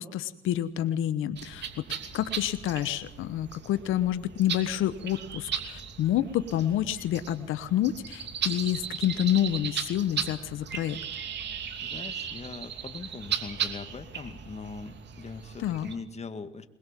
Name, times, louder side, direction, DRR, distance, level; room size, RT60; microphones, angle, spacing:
voice 1, 0.0-1.7 2.1-11.0 15.6-15.9, left 11 dB, 85° left, 13 dB, 1.0 m, -28 dB
sound 1, 1.4-16.0, right 7 dB, 60° right, 2.9 m, -37 dB
voice 2, 11.8-16.7, left 4 dB, 35° left, 9 dB, 1.9 m, -41 dB
22.0 x 21.5 x 7.4 m, 0.86 s
cardioid pair, 90°, 20 cm